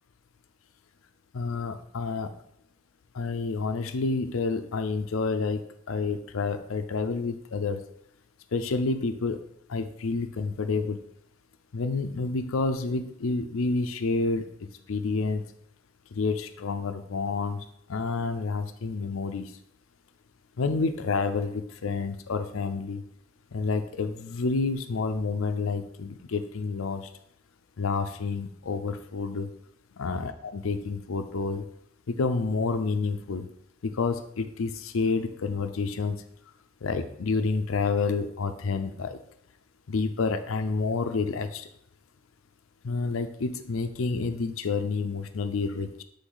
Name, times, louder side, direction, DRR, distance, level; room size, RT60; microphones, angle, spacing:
voice 1, 1.3-2.3 3.1-5.6 5.9-7.8 8.5-9.4 9.7-11.0 11.7-15.4 16.1-19.5 20.6-23.0 23.5-27.1 27.8-29.5 30.0-31.6 32.1-33.5 33.8-36.2 36.8-39.2 39.9-41.7 42.8-46.0, left 4 dB, 85° left, 9 dB, 0.5 m, -29 dB
8.1 x 3.4 x 3.9 m, 0.73 s
head